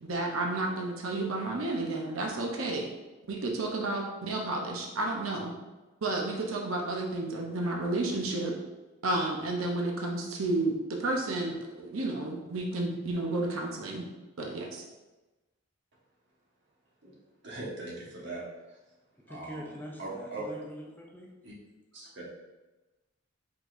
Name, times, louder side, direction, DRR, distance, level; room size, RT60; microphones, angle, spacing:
voice 1, 0.0-2.8 3.3-5.5 6.0-8.5 9.0-14.0 14.4-14.8, right 2 dB, 80° right, 1 dB, 0.7 m, -31 dB
voice 2, 17.4-18.4 19.3-20.5 21.4-21.5 21.9-22.3, right 2 dB, 55° right, -5 dB, 1.3 m, -40 dB
voice 3, 19.2-21.3, equal, 10° left, -1 dB, 0.4 m, -44 dB
4.9 x 4.0 x 2.6 m, 1.1 s
head